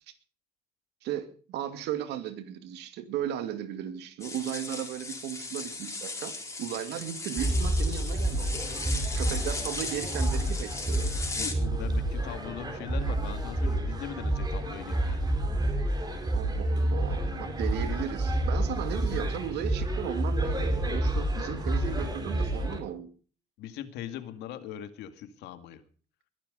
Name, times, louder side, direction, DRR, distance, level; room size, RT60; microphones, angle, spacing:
voice 1, 1.0-8.7 9.1-11.1 16.3-23.1, right 10 dB, 85° right, 10 dB, 2.5 m, -36 dB
sound 1, 4.2-11.5, left 3 dB, 15° left, 4.1 m, -37 dB
sound 2, 7.4-22.8, right 1 dB, 25° right, 4.3 m, -29 dB
voice 2, 11.4-15.2 23.6-25.8, left 11 dB, 85° left, 10 dB, 2.2 m, -40 dB
21.5 x 12.0 x 5.2 m, 0.41 s
cardioid pair, 110°, 17 cm